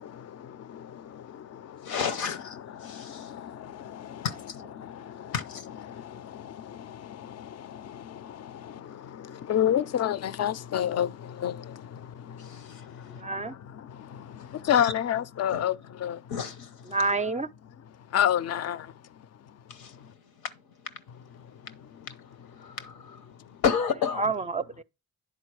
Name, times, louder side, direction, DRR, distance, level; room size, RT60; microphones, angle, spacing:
voice 1, 0.0-2.0 2.7-4.3 4.8-5.3 5.9-16.2 18.1-18.9 20.0-20.1, left 10 dB, 45° left, 0.5 m, -31 dB
voice 2, 1.8-3.3 4.2-4.6 5.3-5.7 8.8-9.1 12.4-13.2 14.4-14.9 15.5-15.7 16.3-17.0 19.7-24.3, left 6 dB, 80° left, 0.9 m, -34 dB
voice 3, 13.2-13.5 16.9-17.5 24.2-24.8, right 3 dB, 20° right, 0.4 m, -28 dB
10.0 x 4.0 x 4.7 m
supercardioid pair, 50°, 36 cm